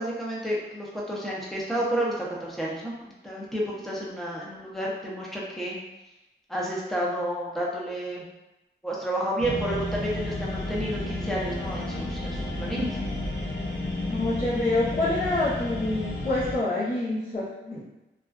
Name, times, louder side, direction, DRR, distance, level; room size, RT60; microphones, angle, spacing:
voice 1, 0.0-5.8 6.5-8.3 8.8-13.0, right 1 dB, ahead, -5 dB, 0.6 m, -31 dB
sound 1, 9.4-16.6, left 1 dB, 90° left, 0.6 m, -32 dB
voice 2, 14.1-17.8, left 2 dB, 45° left, -10 dB, 0.7 m, -27 dB
2.4 x 2.2 x 2.3 m, 0.97 s
wide cardioid pair, 95°, 20 cm